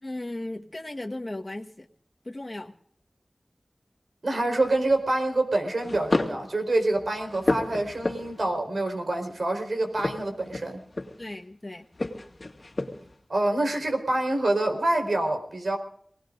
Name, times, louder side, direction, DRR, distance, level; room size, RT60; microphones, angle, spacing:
voice 1, 0.0-1.9 2.2-2.7 11.2-11.9, left 1 dB, 30° left, 1 dB, 1.4 m, -36 dB
voice 2, 4.2-10.8 13.3-15.8, right 2 dB, 75° right, 4 dB, 4.3 m, -26 dB
sound 1, 4.6-5.0 5.8-6.5 6.9-8.6 9.9-11.3 11.9-13.1, left 2 dB, 50° left, 2.2 m, -31 dB
28.0 x 19.0 x 2.6 m, 0.63 s
wide cardioid pair, 70°, 0 cm